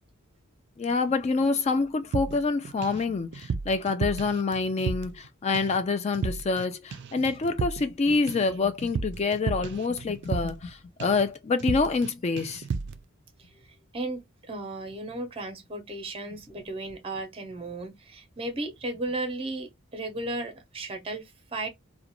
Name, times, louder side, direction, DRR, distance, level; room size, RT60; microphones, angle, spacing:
voice 1, 0.8-12.6, left 4 dB, 30° left, 0.3 m, -27 dB
Chai Tea Drums, 2.1-3.0 3.3-5.3 5.5-5.8 6.1-6.7 6.9-10.7 11.0-11.3 11.6-12.1 12.4-13.0, right 5 dB, 55° right, 0.3 m, -33 dB
voice 2, 13.4-21.7, right 2 dB, 25° right, 0.6 m, -35 dB
2.4 x 2.1 x 2.8 m
head